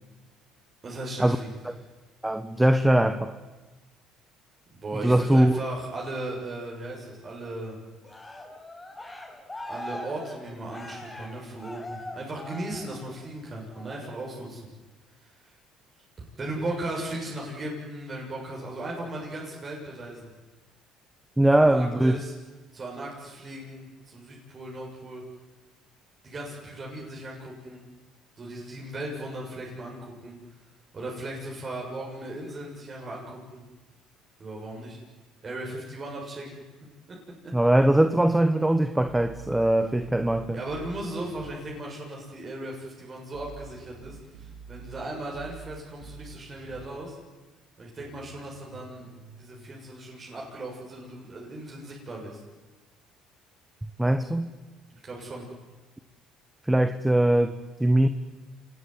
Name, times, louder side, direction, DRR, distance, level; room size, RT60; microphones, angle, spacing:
voice 1, 0.8-1.5 4.7-7.8 9.7-14.6 15.2-15.5 16.4-20.3 21.5-22.3 22.7-25.2 26.2-27.8 28.4-30.4 30.9-33.6 34.4-35.0 35.4-36.6 37.1-37.2 37.4-37.5 40.5-47.2 47.8-49.1 49.4-52.4 55.0-55.5, right 1 dB, 30° right, 7.2 m, -37 dB
voice 2, 2.2-3.3 5.0-5.6 21.4-22.2 37.5-40.6 54.0-54.5 56.7-58.1, right 1 dB, 5° right, 1.3 m, -21 dB
Cheering, 8.0-13.3 13.7-14.1, left 1 dB, 15° left, 5.8 m, -41 dB
sound 1, 39.0-41.6 43.3-47.0 48.0-49.7, right 6 dB, 75° right, 3.6 m, -47 dB
27.5 x 20.0 x 9.8 m
supercardioid pair, 100°, 0 cm